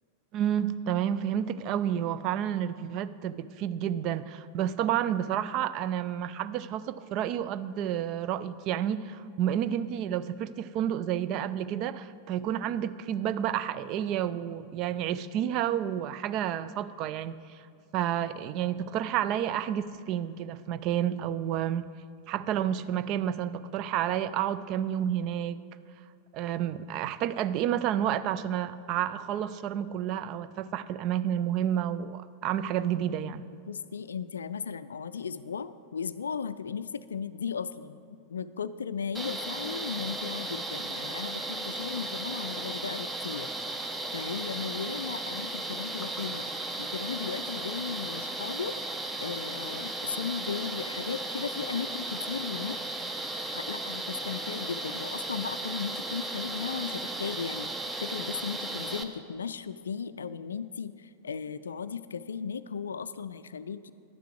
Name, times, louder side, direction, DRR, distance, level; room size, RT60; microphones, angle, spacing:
voice 1, 0.3-17.6 17.9-21.9 22.3-25.6 26.3-33.4, right 10 dB, 40° right, 14 dB, 0.4 m, -30 dB
voice 2, 33.7-43.5 44.1-46.4 46.8-48.8 49.2-52.8 53.5-57.7 58.0-63.9, left 6 dB, 70° left, 14 dB, 0.3 m, -36 dB
sound 1, 39.1-59.0, right 2 dB, 10° right, 0.7 m, -35 dB
11.5 x 10.0 x 4.6 m, 2.4 s
figure-of-eight pair, 90°, 0 cm